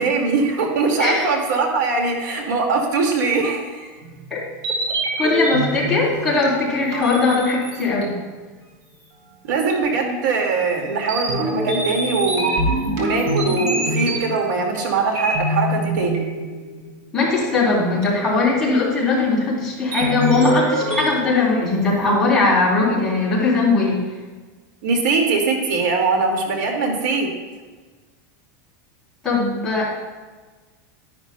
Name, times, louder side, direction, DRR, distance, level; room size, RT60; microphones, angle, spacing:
voice 1, 0.0-3.9 9.4-12.6 13.0-16.2 24.8-27.3, right 4 dB, 80° right, 2 dB, 2.0 m, -21 dB
sound 1, 4.0-8.0 9.7-9.8 10.1-10.2 11.1-14.7 15.2-17.0 18.0-18.1 19.9-22.0, equal, 55° right, 3.2 m, -25 dB
voice 2, 5.2-8.1 17.1-24.0 29.2-29.9, left 3 dB, 5° left, -8 dB, 3.3 m, -19 dB
12.0 x 11.0 x 2.2 m, 1.4 s
supercardioid pair, 170°, 10 cm